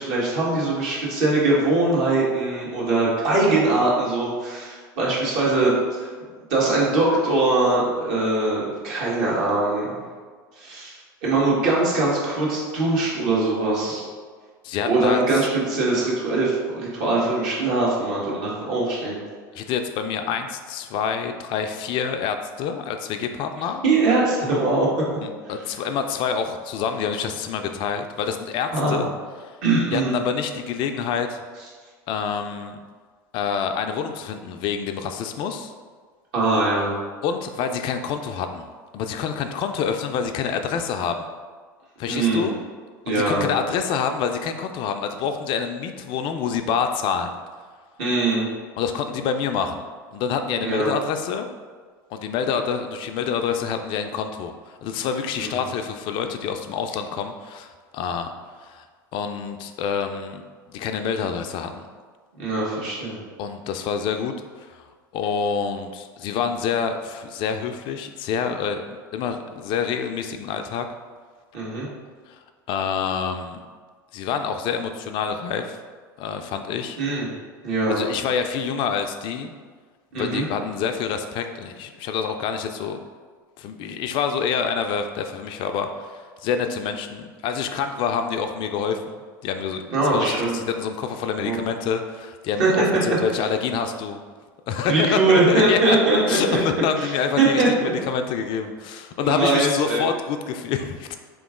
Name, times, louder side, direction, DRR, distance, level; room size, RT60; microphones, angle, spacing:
voice 1, 0.0-6.1 6.5-10.0 10.6-10.9 11.2-14.1 14.8-19.2 23.8-24.9 28.7-29.0 29.6-30.2 36.3-36.9 42.1-42.5 43.0-43.5 48.0-48.5 50.6-50.9 55.4-55.6 62.4-63.2 71.5-71.9 77.0-77.3 77.6-78.0 80.1-80.5 89.9-90.6 91.4-91.6 92.6-92.8 94.9-96.6 97.0-97.1 97.4-97.9 99.2-100.0, right 2 dB, 60° right, -6 dB, 1.5 m, -21 dB
voice 2, 14.6-15.5 19.5-23.8 25.2-29.1 29.9-31.4 32.1-32.8 33.3-35.7 37.2-38.7 38.9-41.3 42.0-42.6 43.1-47.3 48.8-49.8 50.1-51.5 52.1-58.3 58.6-58.8 59.1-60.4 60.7-61.9 63.4-64.8 65.1-70.9 72.3-72.4 72.7-73.6 74.1-75.8 76.2-77.0 77.9-79.5 80.2-83.0 83.6-89.8 90.1-94.2 94.7-96.0 96.3-101.2, left 6 dB, 50° left, 6 dB, 0.4 m, -27 dB
3.6 x 3.0 x 3.6 m, 1.5 s
hypercardioid pair, 85°, 11 cm